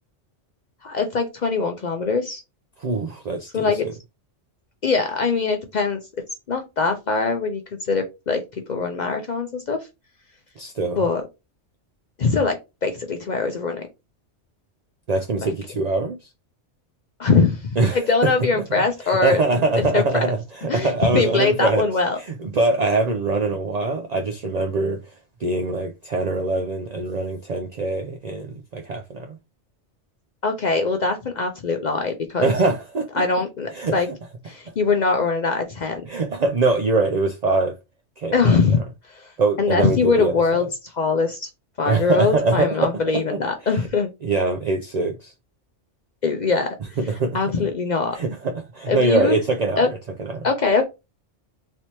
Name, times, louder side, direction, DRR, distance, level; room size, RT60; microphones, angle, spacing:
voice 1, 0.8-2.4 3.5-3.9 4.8-6.0 6.5-8.4 8.7-9.8 11.0-11.2 12.2-13.8 17.2-17.6 17.9-19.4 19.8-20.3 20.7-22.2 30.4-32.5 33.1-34.1 34.4-36.0 38.3-38.8 39.1-39.3 39.6-41.5 41.8-44.1 46.2-46.8 47.3-48.2 48.9-49.4 49.8-49.9 50.4-50.9, left 4 dB, 55° left, 0.5 m, -22 dB
voice 2, 2.8-3.7 10.6-11.0 15.1-16.3 17.8-18.3 19.0-21.8 22.2-25.0 25.4-29.4 32.4-33.1 33.7-34.1 36.1-37.8 38.2-38.6 39.4-40.3 41.9-43.4 44.2-45.3 47.0-47.4 48.1-50.5, right 3 dB, 70° right, 0.4 m, -23 dB
3.2 x 2.8 x 2.9 m
omnidirectional pair, 1.2 m